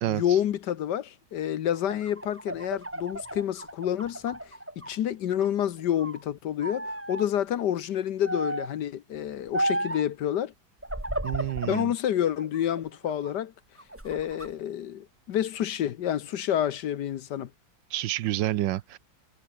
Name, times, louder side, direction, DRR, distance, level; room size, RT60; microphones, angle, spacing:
voice 1, 0.1-10.5 11.6-13.5 14.0-17.5, left 10 dB, 65° left, 1.4 m, -29 dB
sound 1, 1.7-5.0 5.3-6.2 6.6-7.3 8.2-8.8 9.5-10.1 10.8-11.9 12.4-13.3 13.8-14.5, right 1 dB, 5° right, 1.7 m, -34 dB
voice 2, 11.2-11.9 17.9-19.0, right 14 dB, 75° right, 1.3 m, -28 dB
omnidirectional pair, 2.1 m